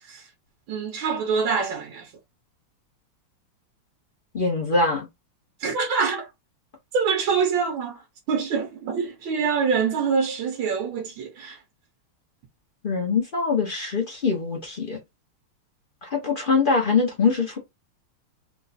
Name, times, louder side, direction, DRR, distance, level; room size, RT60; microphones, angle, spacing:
voice 1, 0.7-2.1 5.6-6.3 6.9-8.0 8.3-11.6, right 5 dB, 70° right, 1.5 m, -25 dB
voice 2, 4.3-5.1 12.8-15.0 16.0-17.6, left 4 dB, 55° left, 0.6 m, -23 dB
3.8 x 2.4 x 4.0 m
omnidirectional pair, 2.4 m